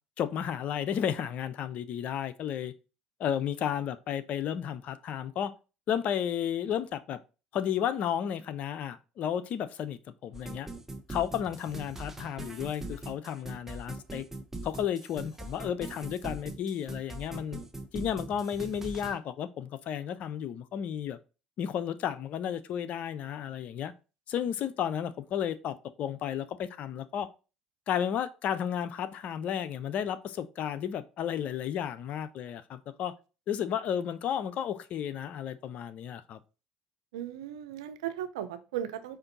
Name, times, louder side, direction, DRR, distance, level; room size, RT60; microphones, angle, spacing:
voice 1, 0.2-2.7 3.2-5.5 5.9-7.2 7.5-10.7 11.1-14.3 14.6-17.6 17.9-21.2 21.6-23.9 24.3-27.3 27.9-33.1 33.5-36.4, left 9 dB, 55° left, 0.5 m, -33 dB
sound 1, 10.3-19.1, right 1 dB, 15° right, 1.0 m, -41 dB
voice 2, 37.1-39.2, right 10 dB, 85° right, 0.5 m, -36 dB
5.0 x 2.6 x 4.0 m
hypercardioid pair, 75°, 3 cm